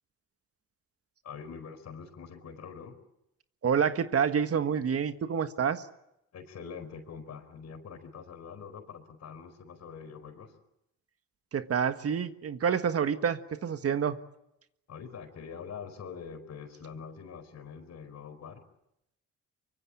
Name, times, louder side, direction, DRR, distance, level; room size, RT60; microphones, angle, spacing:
voice 1, 1.2-3.0 6.3-10.6 14.9-18.6, left 6 dB, 60° left, 9 dB, 4.7 m, -44 dB
voice 2, 3.6-5.9 11.5-14.2, right 7 dB, 50° right, 10 dB, 1.5 m, -28 dB
24.0 x 23.5 x 8.8 m, 0.81 s
cardioid pair, 90°, 30 cm